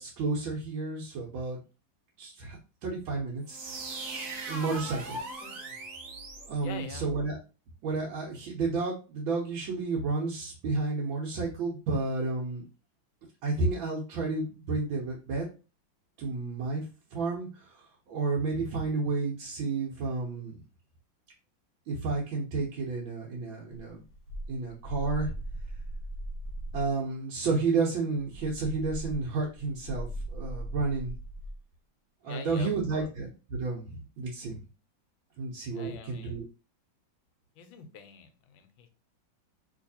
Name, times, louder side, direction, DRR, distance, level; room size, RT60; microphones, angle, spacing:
voice 1, 0.0-1.6 2.2-2.6 2.8-3.8 4.5-5.2 6.4-7.4 7.8-12.6 13.4-15.5 16.2-16.8 17.1-17.7 18.1-20.6 21.9-24.0 24.5-25.3 26.7-31.1 32.2-34.5 35.4-36.4, right 3 dB, 85° right, -3 dB, 1.6 m, -31 dB
sound 1, 3.4-7.2, right 2 dB, 60° right, 1.1 m, -39 dB
voice 2, 4.5-5.6 6.6-7.1 32.2-33.1 35.7-36.4 37.6-38.9, left 6 dB, 85° left, 7 dB, 1.4 m, -46 dB
sound 2, 23.7-27.0 28.2-31.6, right 1 dB, 60° left, 1.3 m, -39 dB
3.2 x 3.0 x 2.7 m, 0.32 s
omnidirectional pair, 2.1 m